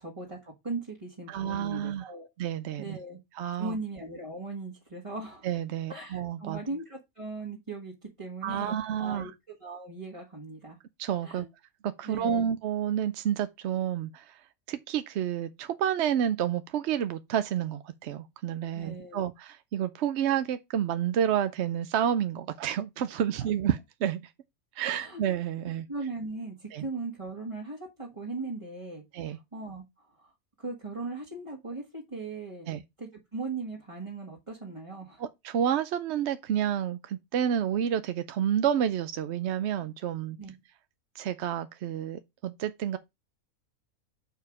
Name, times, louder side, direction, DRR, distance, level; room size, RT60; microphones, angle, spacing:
voice 1, 0.0-2.3 2.8-3.2 3.6-5.5 5.9-10.8 11.2-11.5 12.0-12.4 18.7-19.2 23.4-23.5 24.8-25.2 25.9-32.7 33.0-35.2 40.4-40.5, right 3 dB, 20° right, 1.6 m, -39 dB
voice 2, 1.3-2.0 2.4-3.0 3.4-3.8 5.4-6.6 8.4-9.3 11.0-11.5 11.8-14.4 14.7-24.3 24.8-25.9 26.7-26.8 29.1-29.4 32.7-32.8 35.2-40.4 41.1-43.0, right 9 dB, 65° right, 0.7 m, -29 dB
6.5 x 4.7 x 4.8 m
omnidirectional pair, 1.5 m